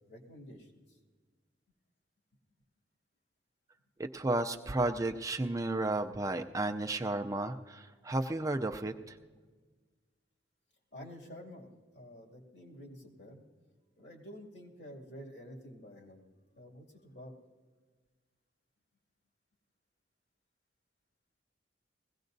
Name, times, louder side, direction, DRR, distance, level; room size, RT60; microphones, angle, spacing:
voice 1, 0.1-0.8 10.9-13.4 14.0-16.2 16.5-17.3, equal, 70° left, 0 dB, 2.4 m, -50 dB
voice 2, 4.0-9.2, right 2 dB, 20° right, 5 dB, 0.4 m, -33 dB
21.0 x 16.5 x 2.6 m, 1.4 s
head